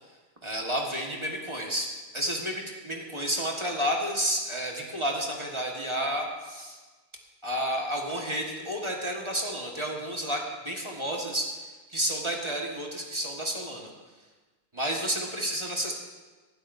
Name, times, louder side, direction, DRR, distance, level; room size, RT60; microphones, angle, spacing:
voice 1, 0.4-6.8 7.4-13.9 14.7-15.9, equal, 15° right, -1 dB, 1.2 m, -31 dB
19.0 x 12.0 x 2.7 m, 1.3 s
omnidirectional pair, 2.4 m